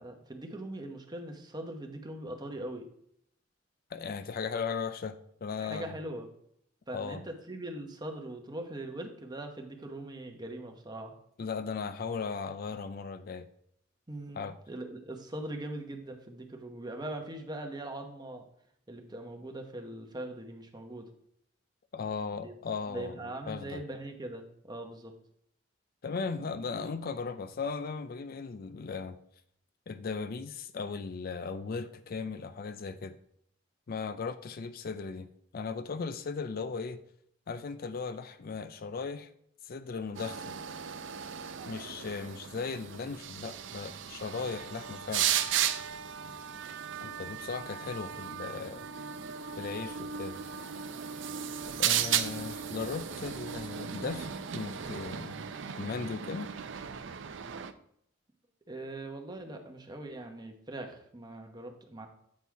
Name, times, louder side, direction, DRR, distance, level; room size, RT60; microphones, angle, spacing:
voice 1, 0.0-2.9 5.6-6.3 6.9-11.1 14.1-18.4 18.9-21.1 22.4-22.5 22.9-25.1 54.8-55.0 58.7-62.1, right 1 dB, 20° right, 4 dB, 1.0 m, -41 dB
voice 2, 3.9-5.9 6.9-7.2 11.4-13.5 14.3-14.6 21.9-23.8 26.0-29.2 29.9-33.2 33.9-35.3 35.5-37.0 37.5-39.3 39.6-40.6 41.7-45.3 47.0-48.9 49.6-50.4 51.8-54.3 54.5-56.5, left 5 dB, 50° left, 11 dB, 0.4 m, -37 dB
sound 1, 40.1-57.7, right 9 dB, 70° right, 0.5 m, -35 dB
8.5 x 4.1 x 4.6 m, 0.71 s
head